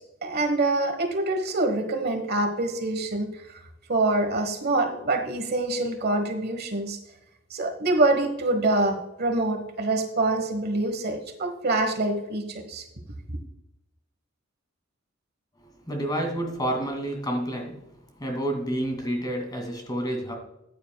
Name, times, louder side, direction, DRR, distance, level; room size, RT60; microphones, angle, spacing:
voice 1, 0.2-3.3 3.9-7.0 7.5-12.8, right 2 dB, 50° right, 6 dB, 1.3 m, -25 dB
voice 2, 15.8-17.8 18.2-20.3, right 1 dB, 20° left, 2 dB, 2.4 m, -29 dB
14.5 x 9.4 x 2.3 m, 0.88 s
head